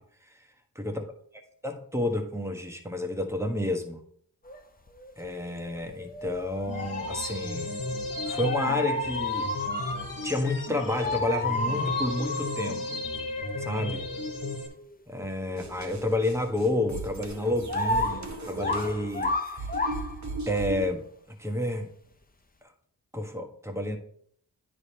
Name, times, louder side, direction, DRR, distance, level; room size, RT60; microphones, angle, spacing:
voice 1, 1.6-4.0 5.2-7.7 8.3-9.5 10.2-13.0 13.6-14.0 15.1-19.7 20.5-21.0 21.4-21.9 23.1-24.0, left 1 dB, 5° right, 3 dB, 1.3 m, -30 dB
sound 1, 4.4-4.6 4.9-10.2 11.0-12.9 13.2-14.5 14.8-14.9 15.2-15.3 15.6-16.3 16.8-16.9 17.7-20.4, left 2 dB, 20° left, 0.8 m, -32 dB
sound 2, 6.7-14.7, left 2 dB, 50° left, 1.8 m, -35 dB
sound 3, 15.6-20.9, right 3 dB, 40° right, 1.5 m, -38 dB
9.5 x 3.5 x 4.4 m, 0.63 s
cardioid pair, 45°, 41 cm